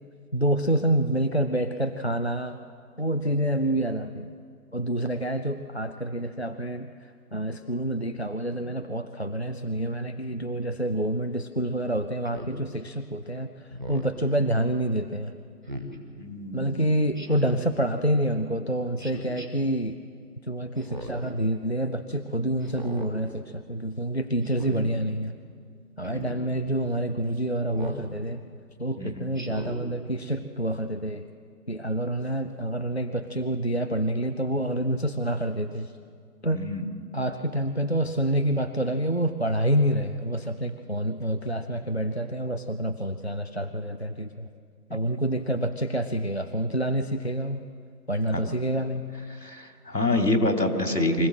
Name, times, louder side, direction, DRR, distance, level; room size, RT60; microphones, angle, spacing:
voice 1, 0.3-2.6 3.0-4.3 4.7-15.3 16.5-20.0 20.5-25.4 26.0-28.4 28.8-31.3 31.7-35.9 36.4-36.6 37.1-44.5 44.9-47.6 48.1-49.0, right 1 dB, 45° left, 8 dB, 0.6 m, -27 dB
Speech synthesizer, 12.3-12.6 13.7-14.2 15.6-16.0 17.2-17.7 19.0-19.5 20.8-21.3 22.6-23.1 24.4-24.8 26.0-26.4 27.7-28.0 29.3-29.8, equal, 30° right, 1.6 m, -37 dB
voice 2, 16.2-16.8 29.0-29.3 36.5-36.8 48.3-48.4 49.4-51.3, left 1 dB, 80° left, 4 dB, 2.9 m, -26 dB
24.5 x 15.5 x 7.6 m, 2.2 s
figure-of-eight pair, 170°, 48 cm